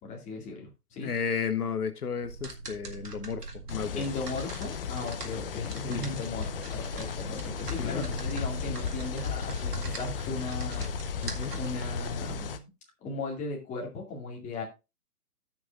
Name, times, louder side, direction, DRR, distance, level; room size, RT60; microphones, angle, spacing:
voice 1, 0.0-1.1 4.0-10.9 11.5-12.7 13.0-14.6, left 3 dB, 15° left, 2.3 m, -37 dB
voice 2, 1.0-3.4 3.7-4.0 5.9-6.2 7.8-8.0 11.2-11.6, left 6 dB, 75° left, 1.1 m, -33 dB
sound 1, 2.2-12.4, right 4 dB, 85° right, 2.1 m, -41 dB
sound 2, 3.7-12.6, left 8 dB, 40° left, 0.7 m, -35 dB
17.0 x 6.1 x 2.5 m
figure-of-eight pair, 135°, 46 cm